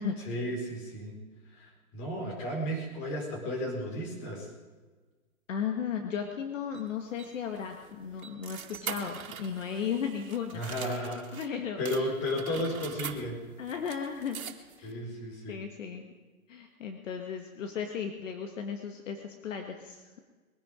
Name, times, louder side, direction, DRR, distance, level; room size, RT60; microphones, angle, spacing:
voice 1, 0.2-4.5 10.5-13.4 14.8-15.6, equal, 30° left, 1 dB, 4.5 m, -34 dB
voice 2, 5.5-10.9 11.3-12.0 13.6-14.4 14.8-14.9 15.5-16.1 16.5-20.2, left 7 dB, 60° left, 4 dB, 1.8 m, -35 dB
sound 1, 6.7-11.5 11.9-14.9, right 8 dB, 75° right, 2.1 m, -44 dB
22.0 x 10.5 x 5.1 m, 1.3 s
hypercardioid pair, 150°, 42 cm